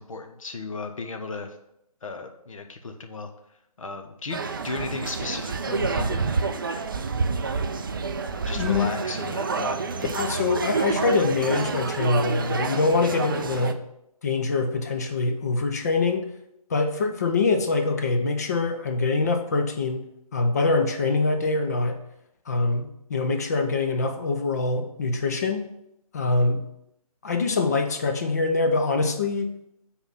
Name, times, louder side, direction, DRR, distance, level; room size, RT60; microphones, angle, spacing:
voice 1, 0.0-1.5 2.0-3.3 3.8-6.6 8.4-9.8, left 3 dB, 60° left, 6 dB, 1.0 m, -35 dB
sound 1, 4.3-13.7, right 4 dB, 35° right, 0.4 m, -28 dB
voice 2, 8.5-8.9 10.1-13.8 14.2-16.3 16.7-20.1 20.3-22.0 22.5-25.7 26.1-26.6 27.2-29.5, left 3 dB, 25° left, 6 dB, 0.5 m, -24 dB
5.7 x 4.2 x 5.5 m, 0.79 s
figure-of-eight pair, 155°, 19 cm